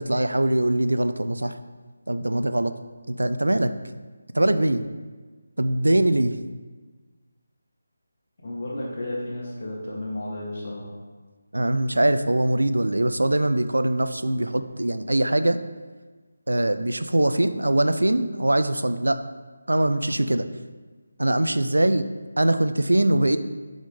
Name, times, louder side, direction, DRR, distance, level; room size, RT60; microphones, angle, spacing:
voice 1, 0.0-1.6 2.1-2.7 3.1-3.7 4.3-4.8 5.6-6.3 11.5-15.6 16.5-19.2 19.7-20.5 21.2-22.0 22.4-23.4, right 1 dB, 90° right, 11 dB, 0.4 m, -22 dB
voice 2, 8.4-10.9, left 1 dB, 50° left, -4 dB, 1.9 m, -32 dB
5.0 x 5.0 x 3.8 m, 1.4 s
figure-of-eight pair, 160°, 0 cm